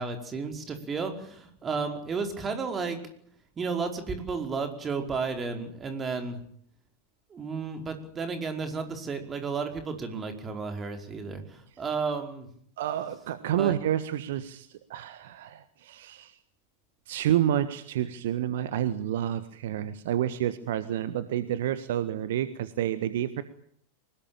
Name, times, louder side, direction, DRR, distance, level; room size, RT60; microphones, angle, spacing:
voice 1, 0.0-3.0 3.6-6.4 7.3-12.5 13.6-13.7, right 4 dB, 20° right, 6 dB, 5.1 m, -33 dB
voice 2, 12.8-16.3 17.1-23.4, right 11 dB, 55° right, 13 dB, 1.5 m, -29 dB
24.5 x 21.0 x 8.9 m, 0.64 s
figure-of-eight pair, 90°, 0 cm